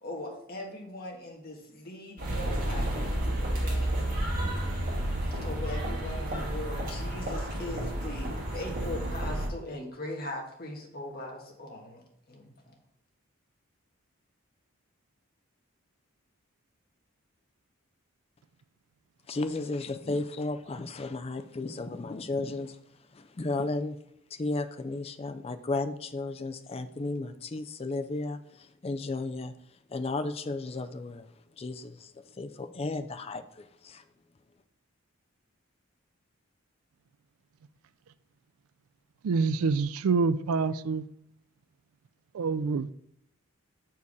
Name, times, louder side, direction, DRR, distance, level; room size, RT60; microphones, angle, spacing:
voice 1, 0.0-4.3 5.4-12.7, left 1 dB, 45° left, 1.4 m, -40 dB
sound 1, 2.2-9.5, right 1 dB, 40° right, 1.8 m, -31 dB
voice 2, 19.3-22.8 23.1-24.0 24.4-29.5 29.9-31.3 31.6-34.0, left 2 dB, 25° left, 0.4 m, -34 dB
voice 3, 39.2-41.0 42.3-42.9, right 4 dB, 90° right, 0.4 m, -26 dB
7.0 x 4.6 x 4.7 m
head